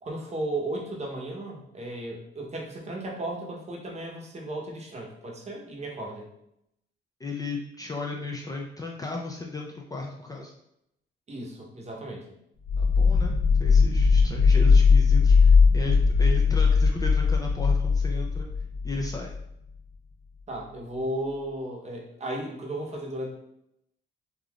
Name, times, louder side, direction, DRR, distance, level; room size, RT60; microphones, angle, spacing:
voice 1, 0.0-6.3 11.3-12.2 14.0-14.1 20.5-23.3, right 1 dB, 35° right, -1 dB, 0.8 m, -35 dB
voice 2, 7.2-10.5 12.8-18.5 18.8-19.3, left 3 dB, 20° left, -1 dB, 0.4 m, -35 dB
sound 1, 12.7-19.4, left 5 dB, 85° left, 1.1 m, -20 dB
3.5 x 2.4 x 2.3 m, 0.78 s
cardioid pair, 90°, 20 cm